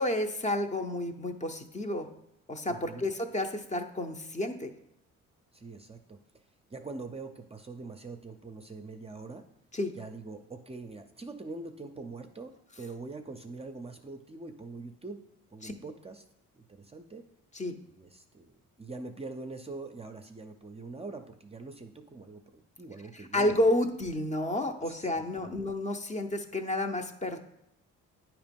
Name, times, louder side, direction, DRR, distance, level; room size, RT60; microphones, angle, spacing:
voice 1, 0.0-2.1 2.5-4.7 9.7-9.9 15.6-15.7 17.5-17.8 23.1-27.4, left 1 dB, 25° left, 6 dB, 0.6 m, -30 dB
voice 2, 2.7-3.0 5.5-6.2 6.7-9.4 10.0-12.5 12.8-15.2 15.5-16.2 16.5-17.2 17.9-18.5 18.8-23.5 24.9-25.7, right 3 dB, 20° right, 5 dB, 0.5 m, -43 dB
8.9 x 3.0 x 5.2 m, 0.85 s
cardioid pair, 90°, 30 cm